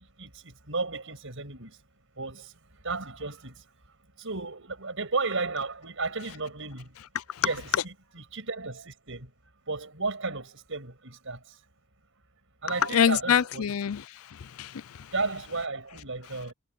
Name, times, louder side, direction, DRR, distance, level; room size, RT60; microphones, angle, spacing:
voice 1, 0.2-1.8 2.2-2.5 2.8-3.5 4.2-6.9 7.4-9.3 9.7-11.4 12.6-13.7 15.1-16.5, right 3 dB, 60° right, 7.2 m, -34 dB
voice 2, 12.7-15.1, left 8 dB, 75° left, 0.5 m, -26 dB
head